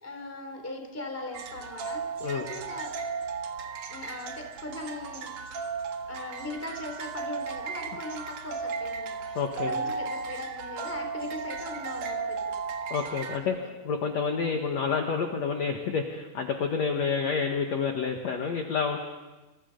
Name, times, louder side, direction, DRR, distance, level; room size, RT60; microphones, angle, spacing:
voice 1, 0.0-2.9 3.9-5.3 6.1-12.4 13.4-13.6, left 2 dB, 5° left, 3 dB, 2.8 m, -39 dB
sound 1, 1.3-13.4, right 5 dB, 60° right, 2.7 m, -35 dB
voice 2, 9.4-9.8 12.9-19.0, left 5 dB, 55° left, 3 dB, 2.2 m, -29 dB
27.5 x 27.5 x 5.3 m, 1.2 s
omnidirectional pair, 4.6 m